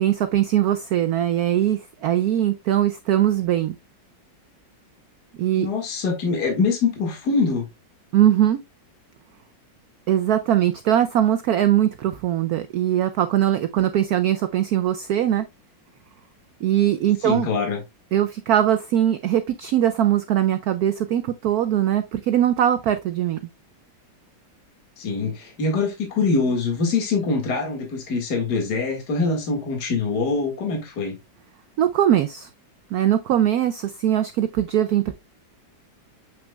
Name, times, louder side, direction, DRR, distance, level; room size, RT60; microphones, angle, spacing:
voice 1, 0.0-3.8 5.4-5.7 8.1-8.6 10.1-15.5 16.6-17.5 18.1-23.4 31.8-32.5 32.9-35.1, right 11 dB, 90° right, 0.8 m, -21 dB
voice 2, 5.6-7.7 17.2-17.8 25.0-31.2, left 4 dB, 55° left, 2.2 m, -24 dB
7.6 x 6.0 x 2.2 m
omnidirectional pair, 2.1 m